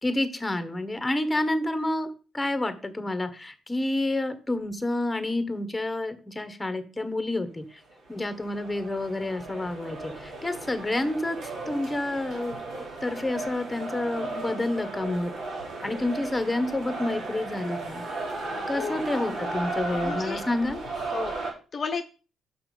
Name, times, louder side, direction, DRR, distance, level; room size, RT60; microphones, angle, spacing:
voice 1, 0.0-7.8 8.1-11.4 11.7-12.6 13.0-15.3 15.8-18.0 18.7-20.8, left 2 dB, 15° left, 10 dB, 1.2 m, -29 dB
sound 1, 7.9-21.5, right 2 dB, 70° right, 3.2 m, -35 dB
voice 2, 18.4-19.0 19.9-20.4 21.1-22.0, left 5 dB, 45° left, 6 dB, 0.7 m, -34 dB
5.9 x 5.7 x 5.3 m, 0.35 s
cardioid pair, 90°, 0 cm